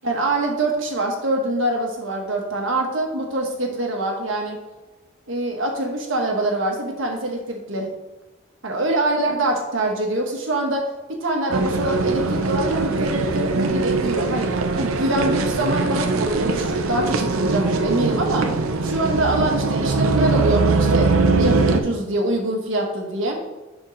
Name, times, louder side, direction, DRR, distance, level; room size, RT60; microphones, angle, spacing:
voice 1, 0.0-4.6 5.3-7.9 8.6-10.8 11.2-14.5 14.8-18.5 18.8-23.4, right 1 dB, 65° right, 1 dB, 1.3 m, -24 dB
sound 1, 11.5-21.8, right 3 dB, 80° right, 0.6 m, -21 dB
4.5 x 4.4 x 5.6 m, 1.1 s
head